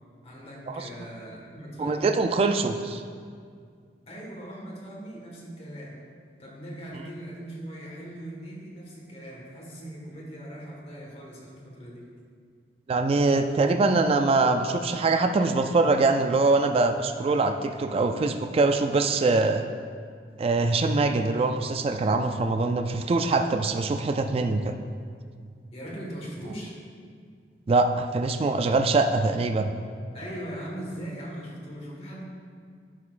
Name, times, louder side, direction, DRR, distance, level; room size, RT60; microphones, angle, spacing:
voice 1, 0.2-2.2 4.1-6.0 6.4-12.1 25.7-26.8 30.1-32.2, equal, 35° left, -3 dB, 1.6 m, -40 dB
voice 2, 1.8-3.0 12.9-19.6 20.4-24.6 27.7-29.7, right 3 dB, 35° right, 7 dB, 0.3 m, -23 dB
11.0 x 6.5 x 2.5 m, 2.1 s
head